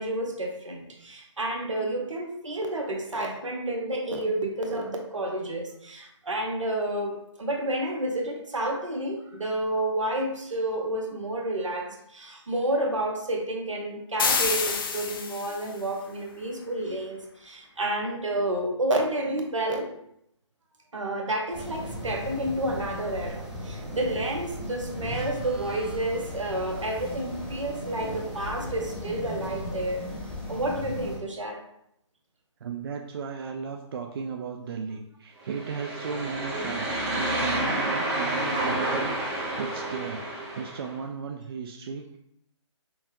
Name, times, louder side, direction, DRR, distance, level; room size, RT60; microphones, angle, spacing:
voice 1, 0.0-19.9 20.9-30.0 30.5-31.6, right 1 dB, 85° right, 2 dB, 0.9 m, -30 dB
sound 1, 14.2-15.7, left 5 dB, 45° left, 0.5 m, -27 dB
sound 2, 21.5-31.2, left 1 dB, ahead, 0.9 m, -37 dB
voice 2, 32.6-42.2, right 5 dB, 50° right, 3 dB, 0.4 m, -36 dB
sound 3, 35.5-40.9, right 1 dB, 25° right, 1.1 m, -29 dB
5.4 x 2.2 x 3.0 m, 0.75 s
figure-of-eight pair, 145°, 16 cm